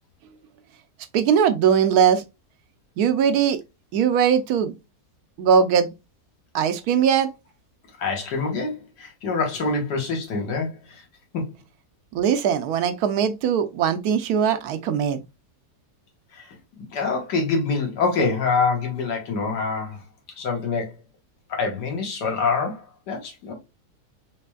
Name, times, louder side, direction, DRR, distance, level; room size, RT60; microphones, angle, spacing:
voice 1, 1.1-2.2 3.0-3.6 3.9-4.7 5.4-5.9 6.5-7.3 12.1-15.2, right 7 dB, 75° right, 1.0 m, -20 dB
voice 2, 8.0-11.0 11.3-11.6 16.3-16.5 16.8-20.0 20.4-20.9 21.5-23.5, left 4 dB, 90° left, 1.8 m, -25 dB
4.1 x 3.2 x 2.2 m
omnidirectional pair, 1.7 m